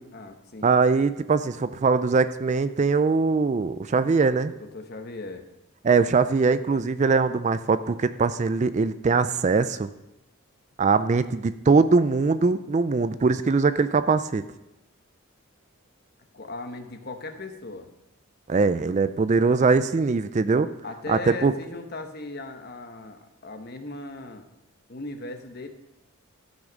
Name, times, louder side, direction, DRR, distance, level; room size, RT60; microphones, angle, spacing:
voice 1, 0.1-0.7 4.6-5.5 16.3-17.9 19.4-19.5 20.8-24.4 24.9-25.7, left 2 dB, 45° left, 6 dB, 1.0 m, -38 dB
voice 2, 0.6-4.5 5.8-9.9 10.8-14.4 18.5-20.7 21.1-21.5, right 4 dB, 35° right, 13 dB, 0.4 m, -22 dB
14.0 x 6.2 x 5.2 m, 0.93 s
head